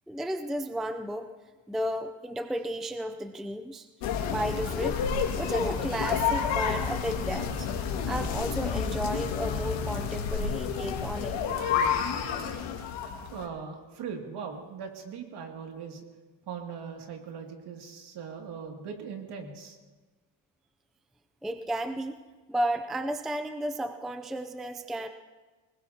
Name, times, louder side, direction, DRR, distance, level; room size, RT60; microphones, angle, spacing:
voice 1, 0.1-1.3 1.7-3.9 4.3-5.0 5.3-7.7 8.1-11.4 21.4-22.2 22.5-25.1, right 1 dB, ahead, 8 dB, 0.4 m, -33 dB
sound 1, 4.0-13.4, left 6 dB, 80° left, 2.2 m, -30 dB
voice 2, 13.3-16.0 16.5-19.8, right 6 dB, 60° right, 2 dB, 2.6 m, -40 dB
24.0 x 20.0 x 2.9 m, 1.2 s
cardioid pair, 145°, 45 cm